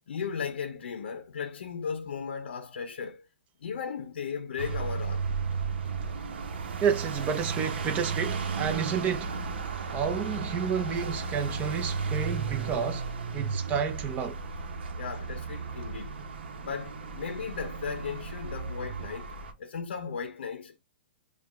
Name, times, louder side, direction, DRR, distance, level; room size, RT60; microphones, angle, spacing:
voice 1, 0.1-3.2 3.6-5.3 15.0-16.1 16.6-20.8, left 6 dB, 80° left, 0.7 m, -36 dB
sound 1, 4.6-19.5, right 4 dB, 80° right, 0.9 m, -34 dB
voice 2, 6.8-9.4 9.9-13.1 13.3-14.4, right 7 dB, 25° right, 0.8 m, -30 dB
4.9 x 2.4 x 3.5 m
hypercardioid pair, 135°, 6 cm